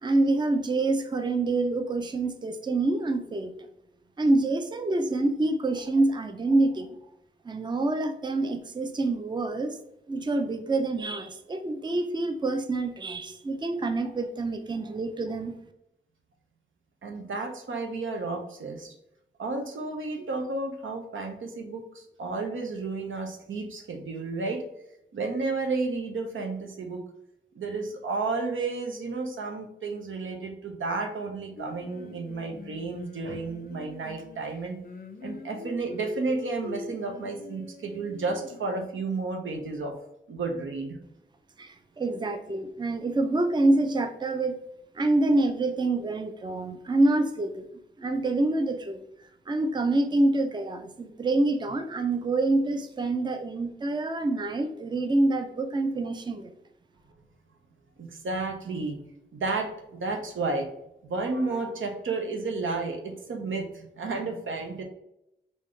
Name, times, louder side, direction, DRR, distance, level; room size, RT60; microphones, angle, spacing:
voice 1, 0.0-3.7 4.2-7.0 7.4-9.8 10.1-15.6 41.6-44.6 44.9-47.7 48.0-49.0 49.5-56.5, right 2 dB, 25° right, 8 dB, 0.4 m, -26 dB
voice 2, 17.0-18.9 19.4-24.6 25.1-27.0 27.5-34.8 35.2-39.9 40.3-41.0 58.0-59.0 59.3-60.7 61.0-64.8, right 3 dB, 80° right, 3 dB, 0.6 m, -32 dB
Singing, 31.6-38.9, left 4 dB, 45° left, 0.5 m, -43 dB
3.4 x 2.6 x 3.1 m, 0.83 s
cardioid pair, 40°, 20 cm